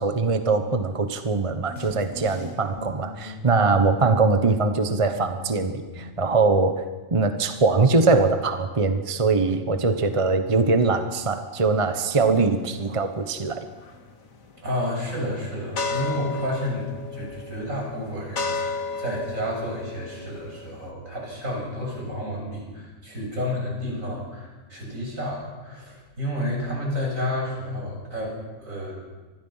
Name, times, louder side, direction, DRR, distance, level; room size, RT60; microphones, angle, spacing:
voice 1, 0.0-6.8 7.1-13.7, right 3 dB, 25° right, 8 dB, 1.1 m, -22 dB
sound 1, 1.7-6.5, left 1 dB, 45° left, 3.6 m, -40 dB
sound 2, 11.6-20.9, left 4 dB, 80° left, 2.2 m, -34 dB
voice 2, 14.6-29.0, left 1 dB, 75° right, -1 dB, 7.4 m, -31 dB
25.5 x 20.5 x 5.7 m, 1.3 s
omnidirectional pair, 1.4 m